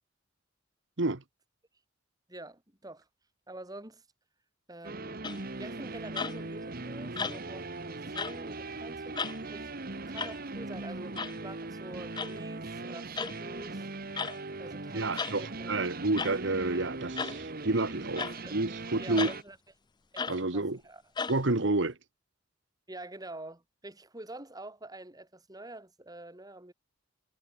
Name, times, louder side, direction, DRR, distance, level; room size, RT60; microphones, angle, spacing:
voice 1, 2.3-3.1 3.5-4.0 4.7-5.3 5.6-9.7 10.1-13.9 14.6-15.7 18.2-18.6 19.0-19.6 20.1-21.0 22.9-26.7, right 2 dB, 20° right, 3.2 m, -46 dB
sound 1, 4.8-19.4, right 3 dB, 50° right, 1.6 m, -40 dB
sound 2, 5.2-5.6 6.1-6.5 7.2-7.6 8.1-8.4 9.1-9.4 10.2-10.4 11.2-11.4 12.1-12.3 13.2-13.4 14.2-14.4 15.2-15.4 16.2-16.4 17.2-17.4 18.2-18.4 19.2-19.4 20.2-20.4 21.2-21.4, left 5 dB, 25° left, 0.5 m, -35 dB
voice 2, 14.9-18.2 18.5-19.3 20.3-20.8 21.3-21.9, right 2 dB, 65° right, 1.5 m, -29 dB
head